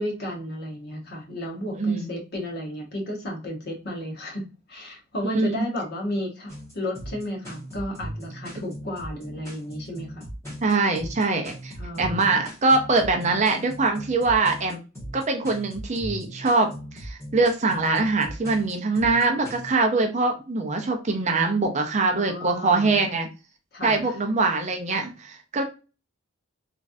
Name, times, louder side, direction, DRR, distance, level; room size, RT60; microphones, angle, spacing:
voice 1, 0.0-10.3 11.8-12.3 22.1-23.1 23.7-24.2, left 1 dB, 45° left, 0 dB, 1.0 m, -33 dB
voice 2, 1.8-2.1 5.3-5.6 10.6-11.7 12.0-14.8 15.1-23.3 23.8-25.6, right 3 dB, 35° right, 4 dB, 0.5 m, -23 dB
sound 1, 6.5-19.7, equal, 15° left, 1.4 m, -38 dB
3.1 x 2.4 x 2.5 m, 0.31 s
head